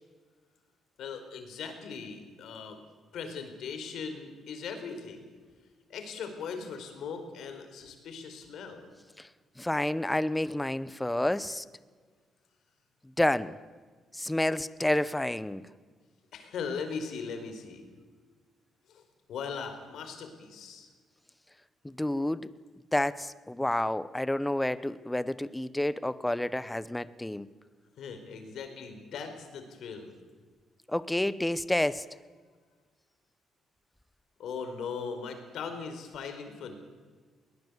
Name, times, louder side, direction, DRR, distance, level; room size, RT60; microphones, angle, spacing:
voice 1, 1.0-2.8 3.1-5.2 5.9-8.9 16.3-17.9 18.9-19.0 19.3-20.9 28.0-30.1 34.4-36.8, left 5 dB, 75° left, 7 dB, 4.5 m, -39 dB
voice 2, 9.6-11.6 13.2-13.6 14.1-15.7 21.8-22.5 22.9-27.5 30.9-32.1, left 1 dB, 10° left, 16 dB, 0.9 m, -29 dB
21.0 x 19.5 x 8.2 m, 1.5 s
cardioid pair, 90°, 0 cm